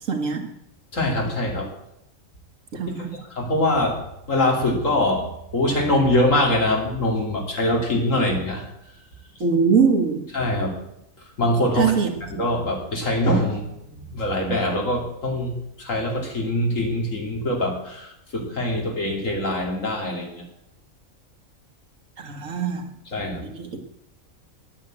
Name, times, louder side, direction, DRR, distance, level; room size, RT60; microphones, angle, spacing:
voice 1, 0.1-0.5 2.7-3.1 9.4-10.3 11.7-12.2 22.2-22.9 23.4-23.8, right 5 dB, 80° right, 4 dB, 1.9 m, -22 dB
voice 2, 0.9-1.7 3.4-4.0 4.3-5.3 5.5-8.6 10.3-10.8 11.4-11.9 12.3-20.4 23.1-23.4, left 1 dB, 70° left, 0 dB, 3.1 m, -23 dB
9.9 x 8.9 x 7.8 m, 0.80 s
omnidirectional pair, 1.4 m